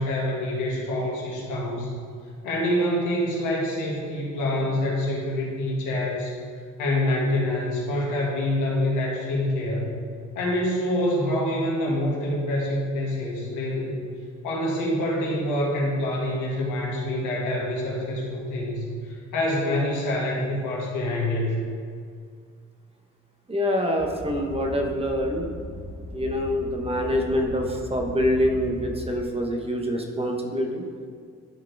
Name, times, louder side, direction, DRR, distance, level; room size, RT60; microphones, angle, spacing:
voice 1, 0.0-1.9 2.4-6.3 6.8-9.9 10.4-14.0 14.4-21.6, left 1 dB, 85° left, -3 dB, 2.0 m, -26 dB
voice 2, 23.5-25.5 26.1-30.9, equal, 20° right, 1 dB, 1.1 m, -25 dB
sound 1, 24.0-29.2, left 1 dB, 10° left, 0.9 m, -38 dB
11.5 x 4.7 x 3.5 m, 2.1 s
cardioid pair, 90°, 30 cm